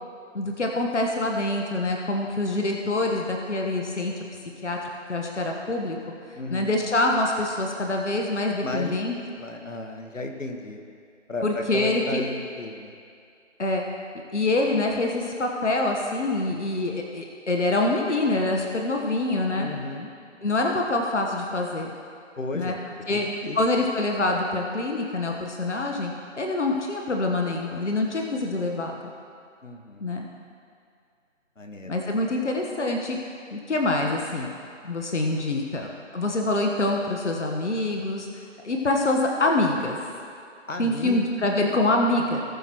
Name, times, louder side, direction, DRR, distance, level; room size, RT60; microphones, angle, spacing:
voice 1, 0.3-4.1 4.6-4.8 5.1-6.0 6.5-9.1 11.4-12.2 13.6-13.8 14.3-19.7 20.4-21.9 22.5-22.7 23.1-23.3 23.5-26.1 26.4-28.9 30.0-30.2 31.8-33.2 33.5-34.5 34.8-38.3 38.6-40.0 40.8-42.4, left 2 dB, 70° left, 1 dB, 1.3 m, -25 dB
voice 2, 6.3-6.7 8.6-8.9 9.4-10.8 11.3-12.9 19.5-20.1 22.4-22.8 23.1-23.6 29.6-30.1 31.6-31.9 40.7-41.2, left 2 dB, 85° left, 4 dB, 1.5 m, -34 dB
19.0 x 6.3 x 3.1 m, 2.3 s
figure-of-eight pair, 160°, 37 cm